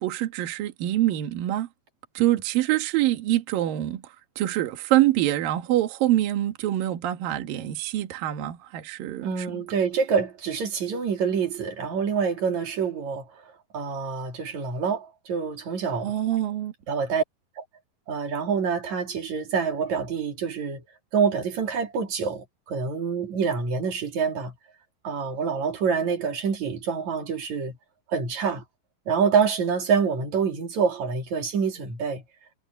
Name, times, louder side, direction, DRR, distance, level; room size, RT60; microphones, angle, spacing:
voice 1, 0.0-1.7 2.1-9.6 16.0-16.7, right 14 dB, 70° right, 3.2 m, -25 dB
voice 2, 9.2-13.3 13.7-16.1 16.9-17.2 17.6-17.7 18.1-20.8 21.1-24.5 25.0-27.8 28.1-28.6 29.1-32.2, right 6 dB, 50° right, 3.8 m, -26 dB
omnidirectional pair, 4.3 m